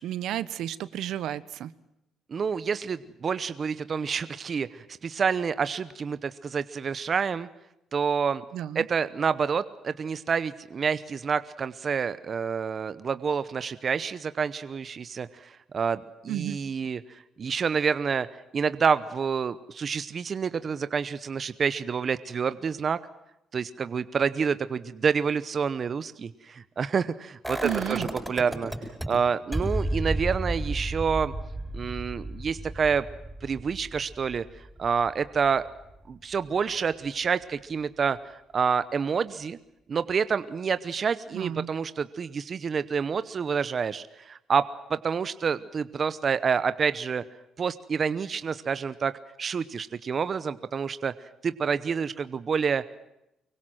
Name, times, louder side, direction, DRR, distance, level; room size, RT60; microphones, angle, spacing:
voice 1, 0.0-1.7 8.5-8.9 16.3-16.6 27.6-28.1 41.3-41.7, right 12 dB, 70° right, 16 dB, 1.2 m, -32 dB
voice 2, 2.3-7.5 7.9-8.4 8.7-18.3 18.5-23.0 23.5-28.7 29.1-31.3 31.7-33.1 33.4-34.4 34.8-35.7 36.1-39.6 39.9-47.2 47.6-49.1 49.4-51.1 51.4-53.0, right 6 dB, 30° right, 14 dB, 0.8 m, -28 dB
sound 1, 27.4-29.1 29.5-35.4 35.7-35.8, right 1 dB, 5° right, 7.5 m, -32 dB
24.5 x 23.5 x 7.7 m, 0.85 s
cardioid pair, 165°, 0 cm